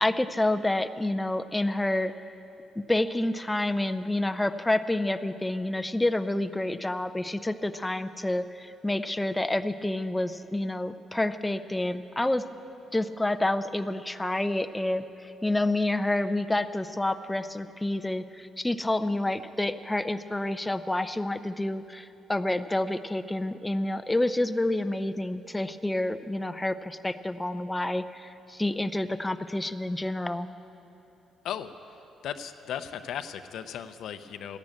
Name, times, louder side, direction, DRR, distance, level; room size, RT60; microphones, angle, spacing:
voice 1, 0.0-2.3 2.9-12.4 12.9-30.5, left 1 dB, 10° left, 9 dB, 0.5 m, -28 dB
voice 2, 32.2-34.6, left 9 dB, 75° left, 9 dB, 0.7 m, -36 dB
14.5 x 10.5 x 8.6 m, 2.9 s
cardioid pair, 90°, 0 cm